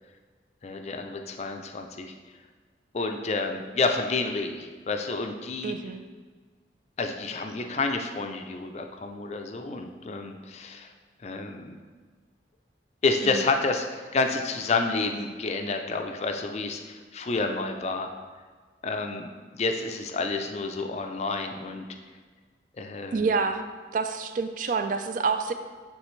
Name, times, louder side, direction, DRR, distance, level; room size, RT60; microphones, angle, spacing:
voice 1, 0.6-2.1 2.9-5.7 7.0-10.9 11.2-11.8 13.0-18.1 18.8-21.9 22.8-23.3, left 3 dB, 35° left, 5 dB, 0.4 m, -29 dB
voice 2, 5.6-6.0 13.2-13.4 23.1-23.6 23.9-25.5, right 4 dB, 45° right, 8 dB, 0.3 m, -27 dB
9.5 x 3.3 x 3.1 m, 1.5 s
head